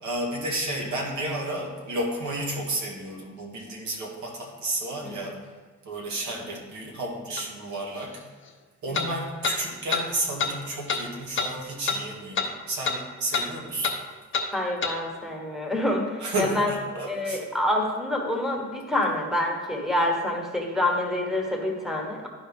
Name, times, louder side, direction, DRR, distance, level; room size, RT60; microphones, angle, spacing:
voice 1, 0.0-5.3 5.9-8.1 8.8-14.0 16.2-17.4, right 1 dB, 70° right, -1 dB, 1.9 m, -31 dB
sound 1, 7.4-7.5 8.9-9.1 9.4-9.6 9.9-10.0 10.4-10.5 10.9-11.0 11.4-11.5 11.9-12.0 12.4-12.5 12.8-13.0 13.3-13.5 13.8-14.0 14.3-14.5 14.8-15.0, left 5 dB, 40° left, 0.9 m, -26 dB
voice 2, 14.5-16.7 17.1-22.3, left 1 dB, ahead, 0 dB, 1.3 m, -27 dB
12.0 x 4.2 x 3.6 m, 1.4 s
cardioid pair, 90°, 30 cm